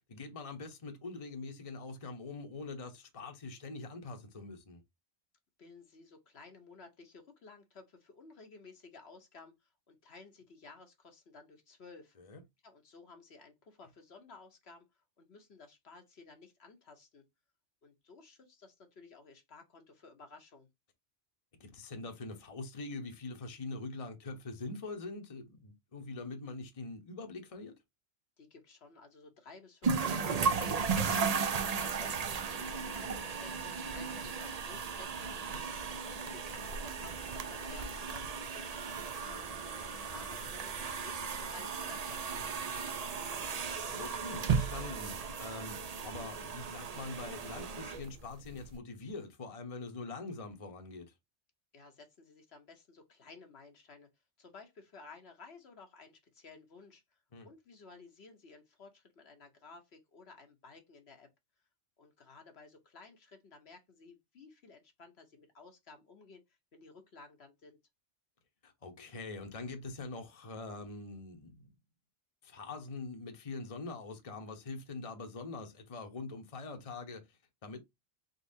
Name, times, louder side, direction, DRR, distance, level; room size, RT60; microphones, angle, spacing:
voice 1, 0.0-4.8 12.2-12.4 21.6-27.7 35.5-35.6 43.9-51.1 57.3-57.5 68.6-71.7 72.4-77.8, left 3 dB, 30° left, 1.0 m, -44 dB
voice 2, 5.6-12.2 12.6-14.8 15.2-17.2 17.8-20.7 28.4-31.1 31.5-38.7 39.2-42.5 42.7-43.7 51.7-54.1 54.4-61.3 62.0-67.8, left 4 dB, 65° left, 1.3 m, -55 dB
sound 1, 29.8-48.7, right 5 dB, 45° right, 0.6 m, -36 dB
4.0 x 4.0 x 2.7 m
omnidirectional pair, 1.2 m